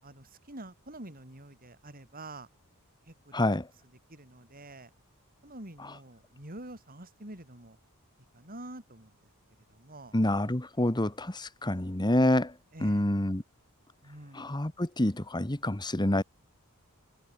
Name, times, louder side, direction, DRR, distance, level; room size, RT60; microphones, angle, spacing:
voice 1, 0.0-2.5 3.0-3.6 4.1-4.9 5.4-7.8 8.3-9.3 9.7-10.2 12.7-13.1 14.0-14.6, right 1 dB, 40° right, 6.5 m, -47 dB
voice 2, 3.3-3.7 10.1-12.5 12.8-13.4 14.3-16.2, left 1 dB, 20° left, 1.4 m, -27 dB
head